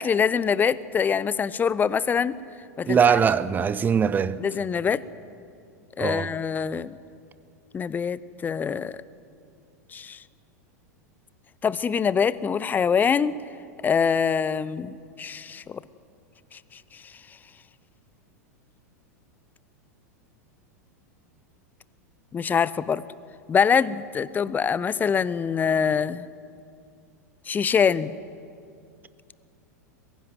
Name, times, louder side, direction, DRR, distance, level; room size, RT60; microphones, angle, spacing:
voice 1, 0.0-2.3 2.8-3.2 4.4-5.0 6.0-6.9 7.7-9.0 9.9-10.2 11.6-13.3 13.8-15.8 16.5-16.6 22.3-23.0 23.5-26.3 27.5-28.2, left 6 dB, 20° left, 0.6 m, -24 dB
voice 2, 2.9-4.4 6.0-6.3, right 7 dB, 20° right, 0.7 m, -21 dB
22.0 x 15.5 x 9.3 m
figure-of-eight pair, 90°, 9 cm